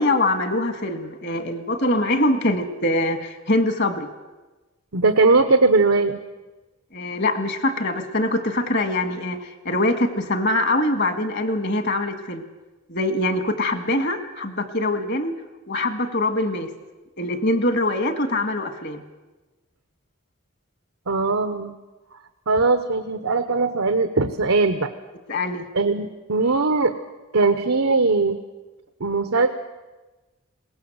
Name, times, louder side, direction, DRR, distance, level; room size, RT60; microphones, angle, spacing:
voice 1, 0.0-4.1 6.9-12.4 12.9-15.3 15.7-16.7 17.2-19.0 25.3-25.6, left 1 dB, 55° left, 8 dB, 1.9 m, -23 dB
voice 2, 4.9-6.2 21.1-21.7 22.5-24.9 25.7-26.9 27.3-28.4 29.0-29.5, right 3 dB, 85° right, 8 dB, 1.0 m, -20 dB
21.5 x 18.5 x 8.0 m, 1.2 s
head